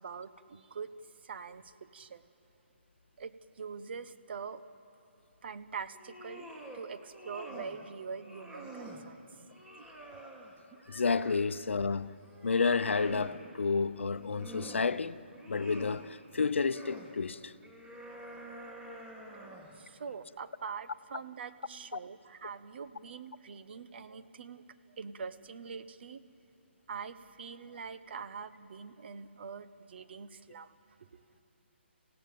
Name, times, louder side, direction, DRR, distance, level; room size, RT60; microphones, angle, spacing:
voice 1, 0.0-2.3 3.2-4.6 5.4-9.2 9.6-10.2 19.7-26.2 26.9-30.7 31.0-31.2, right 5 dB, 60° right, 1.1 m, -44 dB
sound 1, 5.9-6.8 7.1-7.8 8.2-9.0 9.5-11.5 12.0-13.4 14.0-14.9 15.3-16.0 16.5-17.1 17.6-19.8, right 1 dB, 10° right, 2.7 m, -47 dB
voice 2, 10.9-12.1 12.4-15.2 15.5-17.5, left 4 dB, 80° left, 0.7 m, -30 dB
29.5 x 16.5 x 8.7 m
hypercardioid pair, 150°, 6 cm